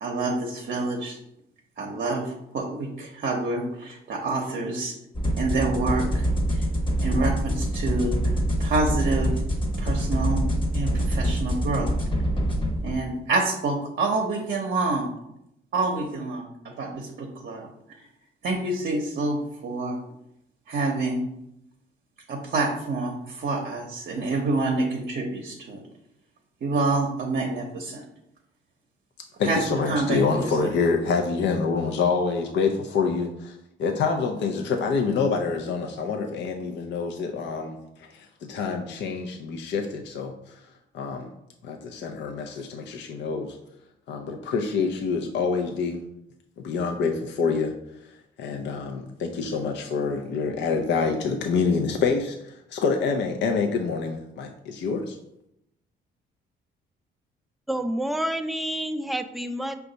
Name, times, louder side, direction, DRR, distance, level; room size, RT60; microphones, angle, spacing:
voice 1, 0.0-1.2 1.8-2.2 2.5-4.9 5.4-6.3 6.5-6.6 7.0-8.1 8.6-9.3 9.8-10.4 10.7-11.9 12.8-15.1 15.7-17.7 18.0-18.1 18.4-20.0 20.7-21.2 22.3-25.8 26.6-28.0 29.4-29.6 29.9-30.5, right 3 dB, 55° right, 1 dB, 0.7 m, -27 dB
sound 1, 5.1-12.9, equal, 25° left, 1.0 m, -25 dB
voice 2, 29.4-40.7 40.9-41.3 41.6-43.6 44.1-46.0 46.6-55.2, left 5 dB, 65° left, 3 dB, 0.5 m, -27 dB
voice 3, 57.7-59.8, right 1 dB, ahead, 8 dB, 0.3 m, -28 dB
5.1 x 2.3 x 3.9 m, 0.81 s
cardioid pair, 90°, 20 cm